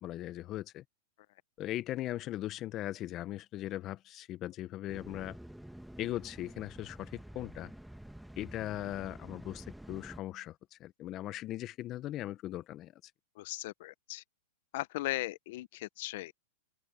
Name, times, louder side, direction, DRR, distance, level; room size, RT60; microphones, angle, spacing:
voice 1, 0.0-0.8 1.6-5.4 6.0-7.7 8.4-13.1, left 14 dB, 35° left, 0.9 m, -39 dB
sound 1, 4.9-10.2, right 1 dB, ahead, 1.6 m, -49 dB
voice 2, 13.4-14.2 14.7-16.4, left 18 dB, 60° left, 0.7 m, -38 dB
open air
hypercardioid pair, 130°, 0 cm